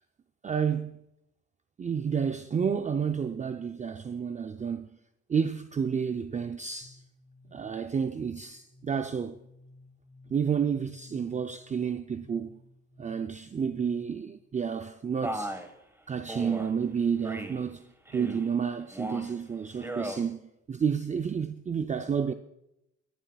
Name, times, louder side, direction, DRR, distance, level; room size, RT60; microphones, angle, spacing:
voice 1, 0.4-1.0 1.8-5.0 5.3-7.0 7.5-9.4 10.3-12.6 13.0-15.6 16.1-22.3, right 7 dB, 25° right, 0.4 m, -30 dB
sound 1, 6.8-14.4, left 2 dB, 25° left, 5.2 m, -55 dB
Male speech man speaking, 15.2-15.7 16.3-16.7 17.2-17.6 18.1-18.5 18.9-19.3 19.7-20.2, right 1 dB, 10° right, 1.3 m, -36 dB
26.5 x 11.0 x 2.3 m
cardioid pair, 90°, 30 cm